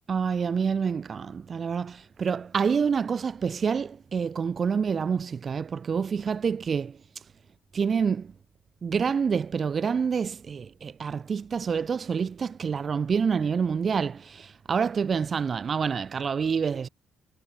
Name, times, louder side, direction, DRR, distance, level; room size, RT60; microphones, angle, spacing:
voice 1, 0.1-7.0 7.7-8.3 8.8-16.9, right 6 dB, 45° right, 0.5 m, -27 dB
cardioid pair, 90°, 0 cm